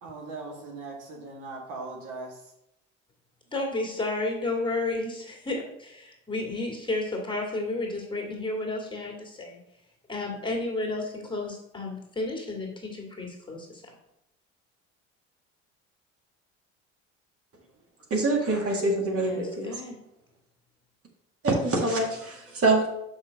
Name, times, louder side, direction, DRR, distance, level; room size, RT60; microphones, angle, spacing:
voice 1, 0.0-2.4, right 3 dB, 65° right, -1 dB, 1.9 m, -39 dB
voice 2, 3.5-9.6 10.1-13.8 19.1-20.0, left 2 dB, 15° left, 0 dB, 2.1 m, -32 dB
voice 3, 18.1-19.7 21.4-22.9, right 2 dB, 40° right, 0 dB, 1.8 m, -25 dB
5.8 x 5.6 x 4.0 m, 0.81 s
hypercardioid pair, 65°, 35 cm